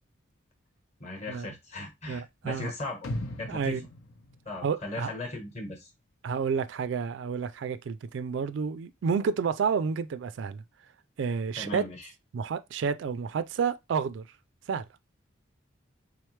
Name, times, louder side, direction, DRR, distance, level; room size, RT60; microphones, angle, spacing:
voice 1, 1.0-3.0 3.4-3.8 4.4-5.9 11.6-12.1, left 2 dB, 30° left, 1.0 m, -37 dB
voice 2, 2.1-2.7 3.5-3.8 4.6-5.1 6.2-10.6 11.2-11.8 12.3-14.2 14.7-14.8, right 6 dB, 65° right, 0.3 m, -30 dB
sound 1, 3.0-5.2 5.5-5.6, left 1 dB, 90° left, 0.8 m, -38 dB
3.7 x 3.2 x 3.1 m
head